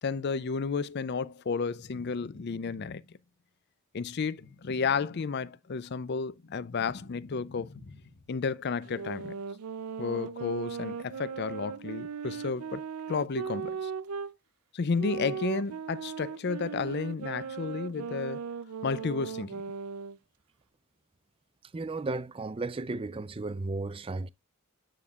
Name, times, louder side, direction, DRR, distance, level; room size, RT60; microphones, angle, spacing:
voice 1, 0.0-3.0 3.9-7.7 8.3-9.4 10.0-12.8 13.1-13.9 14.7-18.5 18.8-19.6, left 5 dB, 50° left, 0.4 m, -32 dB
sound 1, 1.7-3.3 4.3-5.8 6.1-8.5, left 3 dB, 75° left, 0.8 m, -50 dB
sound 2, 8.8-14.3 15.0-20.2, right 6 dB, 90° right, 0.5 m, -38 dB
voice 2, 21.7-24.3, right 3 dB, 25° right, 0.4 m, -34 dB
9.2 x 6.7 x 2.4 m
head